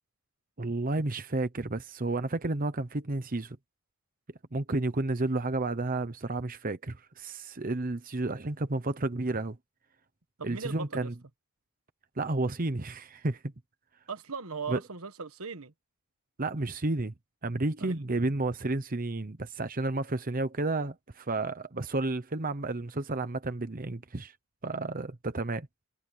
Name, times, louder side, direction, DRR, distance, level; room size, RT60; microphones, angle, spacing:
voice 1, 0.6-3.6 4.5-9.6 10.4-11.1 12.2-13.4 14.7-14.8 16.4-17.1 17.4-24.3 24.6-25.7, right 2 dB, 40° right, 1.0 m, -31 dB
voice 2, 10.4-11.1 14.1-15.7 17.8-18.0, right 5 dB, 75° right, 1.4 m, -38 dB
head